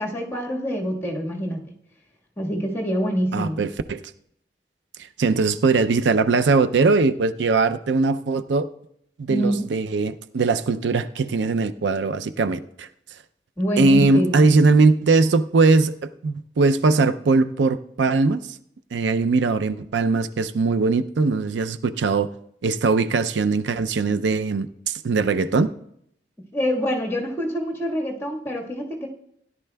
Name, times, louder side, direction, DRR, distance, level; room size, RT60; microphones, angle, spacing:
voice 1, 0.0-1.7 2.4-3.7 9.3-9.7 13.6-14.5 26.5-29.1, equal, 15° left, -1 dB, 1.5 m, -26 dB
voice 2, 3.3-4.0 5.2-8.7 9.2-12.9 13.8-18.4 18.9-22.3 22.6-25.7, right 3 dB, 85° right, 12 dB, 0.5 m, -20 dB
16.5 x 10.5 x 2.3 m, 0.72 s
head